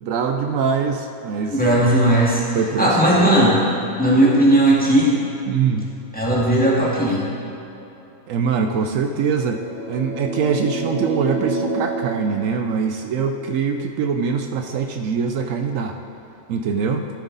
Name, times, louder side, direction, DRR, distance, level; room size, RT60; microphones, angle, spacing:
voice 1, 0.0-1.9 2.5-3.3 5.5-5.9 8.3-9.6 9.9-16.0 16.5-17.1, right 6 dB, 75° right, 6 dB, 1.0 m, -23 dB
voice 2, 1.5-2.4 2.8-3.6 4.0-5.1 6.1-7.2, right 1 dB, 5° left, -6 dB, 1.9 m, -16 dB
sound 1, 9.3-13.2, right 2 dB, 65° left, 1.4 m, -28 dB
12.5 x 8.0 x 4.0 m, 2.9 s
omnidirectional pair, 1.4 m